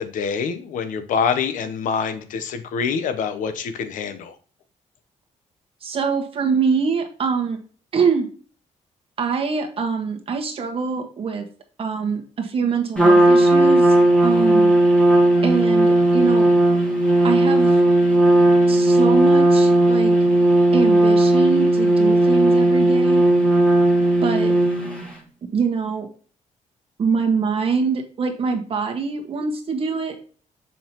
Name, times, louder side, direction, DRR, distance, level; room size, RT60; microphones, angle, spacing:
voice 1, 0.0-4.3, left 6 dB, 90° left, 10 dB, 0.9 m, -25 dB
voice 2, 5.8-7.6 7.9-8.3 9.2-11.5 11.8-14.7 15.4-16.5 17.2-17.8 18.7-20.1 20.7-23.2 24.2-24.5 25.4-26.1 27.0-30.2, right 5 dB, 45° right, 3 dB, 1.5 m, -24 dB
Trumpet, 13.0-25.1, right 1 dB, 10° left, 1.8 m, -16 dB
7.3 x 5.5 x 3.0 m, 0.40 s
cardioid pair, 135°, 13 cm